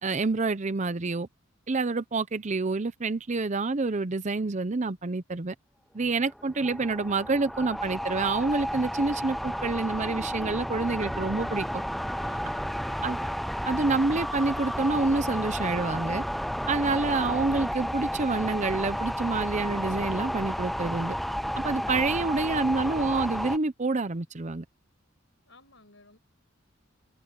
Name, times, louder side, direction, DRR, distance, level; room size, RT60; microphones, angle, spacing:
voice 1, 0.0-1.3 1.7-5.5 5.9-11.8 13.0-13.2 13.6-16.2 16.7-21.1 21.6-24.6, right 3 dB, 35° right, 0.7 m, -28 dB
sound 1, 6.2-23.6, equal, ahead, 0.4 m, -32 dB
voice 2, 12.2-13.4 25.5-26.2, left 3 dB, 65° left, 5.8 m, -55 dB
head